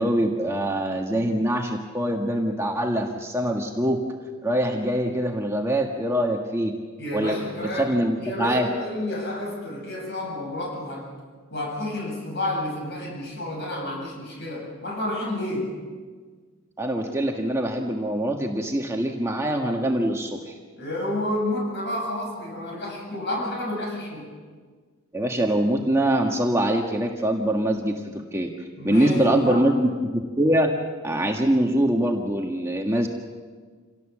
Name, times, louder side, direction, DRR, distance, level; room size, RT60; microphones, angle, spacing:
voice 1, 0.0-4.0 4.4-6.8 7.1-7.4 7.7-8.7 16.8-20.5 25.1-28.5 28.8-30.8 31.0-33.1, right 1 dB, 10° right, 2 dB, 1.5 m, -23 dB
voice 2, 7.0-7.9 8.2-11.1 11.5-15.8 20.8-24.3 28.8-29.7, left 1 dB, 50° left, -1 dB, 7.9 m, -30 dB
27.5 x 18.0 x 7.3 m, 1.5 s
head